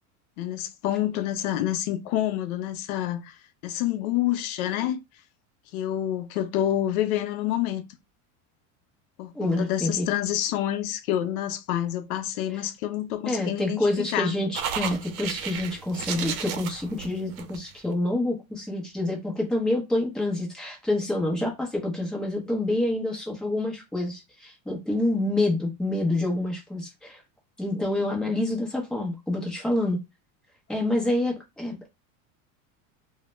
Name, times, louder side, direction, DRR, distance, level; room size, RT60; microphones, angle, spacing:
voice 1, 0.4-3.4 3.6-5.0 5.7-7.8 9.2-14.4 30.8-30.9, left 12 dB, 85° left, 0.6 m, -28 dB
voice 2, 9.3-10.1 13.3-27.2 27.6-30.0 30.7-31.9, left 1 dB, ahead, 0.6 m, -27 dB
sound 1, 14.5-17.9, right 8 dB, 80° right, 0.6 m, -33 dB
2.2 x 2.1 x 2.9 m
supercardioid pair, 140°, 42 cm